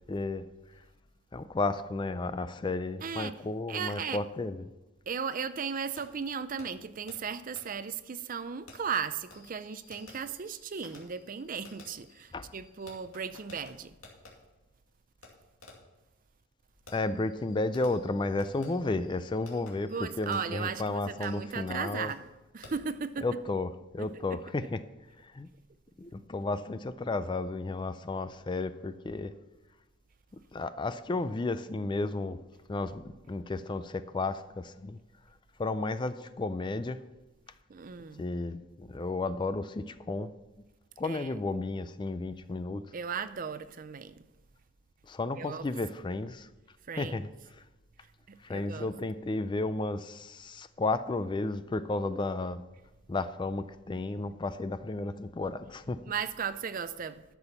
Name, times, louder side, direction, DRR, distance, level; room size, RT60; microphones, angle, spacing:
voice 1, 0.1-0.5 1.3-4.7 12.3-12.5 16.9-22.1 23.2-23.7 23.9-24.8 25.2-25.5 26.0-29.3 30.5-32.4 32.7-35.0 35.6-37.0 38.2-40.3 41.0-42.8 45.1-46.5 46.9-47.3 48.4-52.6 53.1-56.1, left 2 dB, 20° left, 0.3 m, -33 dB
voice 2, 3.0-3.4 3.7-4.2 5.1-14.0 19.9-23.3 24.0-24.4 37.7-38.2 41.0-41.4 42.9-44.3 45.4-45.6 46.9-47.3 48.3-48.9 56.1-57.2, right 6 dB, 40° right, 0.5 m, -36 dB
Fireworks, 6.0-6.1 6.6-6.7 7.1-7.2 7.6-7.7 8.7-14.3 15.2-15.3 15.6-15.9 16.9-22.3 22.6-22.9, left 3 dB, 75° left, 2.3 m, -55 dB
12.0 x 7.0 x 5.6 m
head